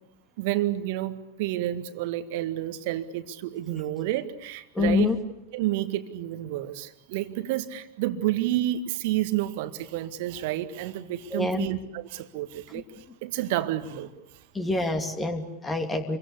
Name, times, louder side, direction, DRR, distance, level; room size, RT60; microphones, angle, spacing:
voice 1, 0.4-5.1 5.5-12.8 13.2-14.1, right 14 dB, 50° right, 10 dB, 1.9 m, -30 dB
voice 2, 4.7-5.2 11.3-11.7 14.5-16.2, left 3 dB, 15° left, 7 dB, 2.8 m, -26 dB
28.5 x 23.5 x 8.5 m, 0.87 s
figure-of-eight pair, 90°, 0 cm